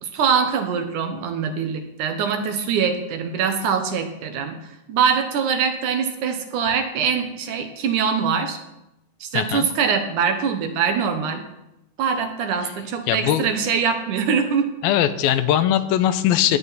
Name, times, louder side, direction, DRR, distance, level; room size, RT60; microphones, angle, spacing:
voice 1, 0.0-4.6 4.9-8.6 9.2-11.4 12.0-14.7, right 6 dB, 65° right, 6 dB, 2.3 m, -23 dB
voice 2, 9.3-9.7 13.1-13.5 14.8-16.6, left 11 dB, 85° left, 12 dB, 2.5 m, -20 dB
16.0 x 9.8 x 4.1 m, 0.90 s
omnidirectional pair, 4.2 m